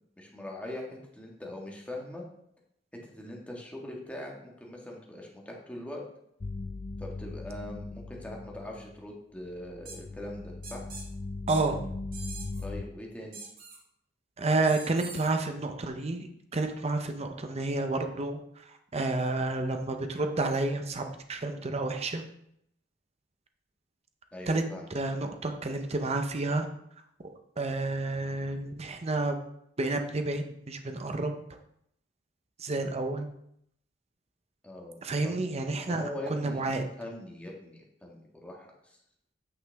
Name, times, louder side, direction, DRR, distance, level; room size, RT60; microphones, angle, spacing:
voice 1, 0.2-2.2 3.0-6.0 7.0-10.9 12.6-13.4 24.3-24.8 34.6-35.4 35.9-36.6 37.0-39.0, left 1 dB, 5° left, -1 dB, 1.6 m, -41 dB
sound 1, 6.4-9.1 9.4-12.8, left 3 dB, 30° left, 0.3 m, -39 dB
sound 2, 9.9-10.0 10.6-11.1 11.5-11.6 12.1-12.6 13.3-13.8 14.6-15.3, right 4 dB, 50° right, 1.7 m, -44 dB
voice 2, 11.5-11.8 14.4-22.2 24.5-24.6 24.9-26.7 27.2-29.4 29.8-31.3 32.6-33.3 35.0-36.9, right 2 dB, 35° right, 6 dB, 0.7 m, -30 dB
8.9 x 5.6 x 3.4 m, 0.73 s
head